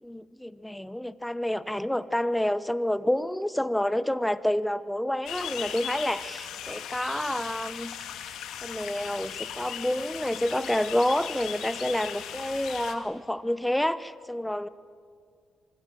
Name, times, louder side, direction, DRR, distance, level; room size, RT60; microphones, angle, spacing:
voice 1, 0.0-8.0 8.6-14.7, left 1 dB, 5° left, 15 dB, 1.0 m, -28 dB
sound 1, 5.3-12.9, left 9 dB, 85° left, 2.2 m, -38 dB
25.5 x 24.0 x 7.7 m, 2.2 s
cardioid pair, 90°, 0 cm